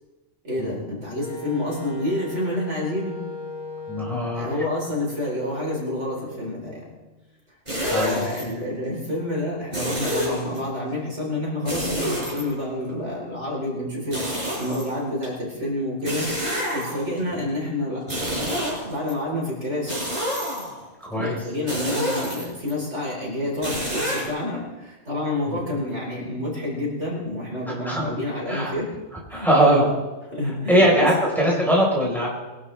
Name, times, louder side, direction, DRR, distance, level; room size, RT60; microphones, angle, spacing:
voice 1, 0.4-3.2 4.3-6.8 7.8-16.3 16.7-19.9 21.1-28.9 29.3-29.9 30.3-31.1, left 1 dB, 70° right, -3 dB, 4.6 m, -29 dB
Wind instrument woodwind instrument, 1.2-7.0, left 1 dB, 45° left, 6.4 m, -38 dB
voice 2, 3.9-4.5 7.9-8.2 21.0-21.4 25.5-25.6 27.6-28.0 28.5-28.8 29.3-29.9 30.4-32.3, right 1 dB, ahead, -4 dB, 4.6 m, -21 dB
sound 1, 7.7-8.4 9.7-10.6 11.6-12.9 14.1-15.3 16.0-17.2 18.0-19.1 19.9-20.8 21.7-22.7 23.6-24.3, equal, 35° right, 5.5 m, -28 dB
22.0 x 12.0 x 3.4 m, 1.1 s
omnidirectional pair, 1.3 m